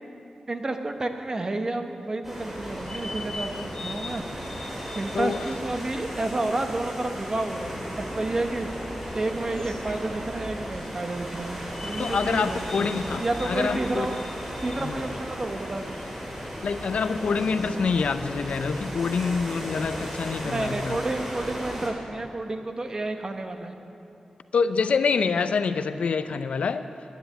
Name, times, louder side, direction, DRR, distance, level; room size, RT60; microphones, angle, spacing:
voice 1, 0.5-4.2 4.9-8.7 9.1-14.2 14.6-16.0 20.4-23.7, right 2 dB, 30° right, 5 dB, 0.9 m, -30 dB
sound 1, 2.2-21.9, equal, 15° right, 3.9 m, -36 dB
sound 2, 2.6-19.2, left 2 dB, 30° left, 1.1 m, -43 dB
voice 2, 12.0-14.1 14.8-15.0 16.6-21.0 24.5-26.9, left 5 dB, 85° left, 11 dB, 0.5 m, -26 dB
10.0 x 10.0 x 9.2 m, 2.7 s
wide cardioid pair, 145°, 2 cm